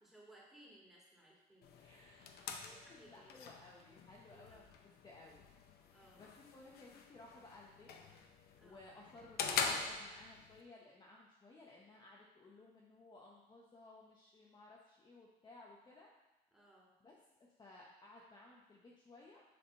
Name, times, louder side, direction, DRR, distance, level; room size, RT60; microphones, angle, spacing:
voice 1, 0.0-1.8 2.2-3.5 4.3-4.7 5.9-6.3 8.6-8.8 16.5-16.9, right 1 dB, ahead, -5 dB, 1.9 m, -63 dB
sound 1, 1.6-10.6, left 5 dB, 65° left, 0.6 m, -44 dB
voice 2, 1.7-5.4 5.8-7.9 8.6-16.1 17.0-19.4, left 2 dB, 25° left, -3 dB, 0.8 m, -59 dB
6.8 x 3.5 x 4.4 m, 1.0 s
cardioid pair, 110°, 17 cm